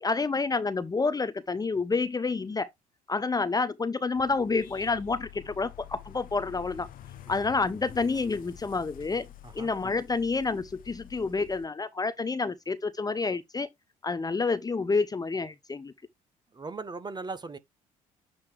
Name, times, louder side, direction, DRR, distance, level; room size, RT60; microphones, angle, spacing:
voice 1, 0.0-2.7 3.1-6.9 7.3-9.3 9.5-13.7 14.0-15.9, left 4 dB, 20° left, 0.8 m, -29 dB
sound 1, 4.2-11.7, left 11 dB, 55° left, 0.8 m, -48 dB
voice 2, 16.5-17.6, right 4 dB, 25° right, 1.0 m, -38 dB
8.7 x 3.0 x 3.5 m
hypercardioid pair, 55°, 17 cm